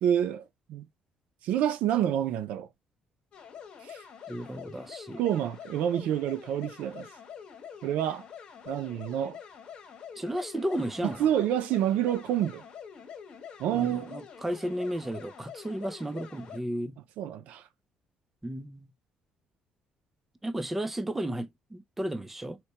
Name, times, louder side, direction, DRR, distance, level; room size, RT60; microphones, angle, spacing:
voice 1, 0.0-0.9 1.4-2.7 3.9-4.0 5.2-7.1 7.8-8.2 8.7-9.4 11.0-12.6 13.6-14.2 17.2-17.6, right 10 dB, 80° right, 0.4 m, -28 dB
sound 1, 3.3-16.6, left 7 dB, 50° left, 1.2 m, -46 dB
voice 2, 4.3-5.2 10.2-11.3 13.7-17.0 18.4-18.9 20.4-22.6, right 1 dB, 10° right, 0.4 m, -33 dB
4.3 x 2.1 x 2.8 m
cardioid pair, 160°, 2 cm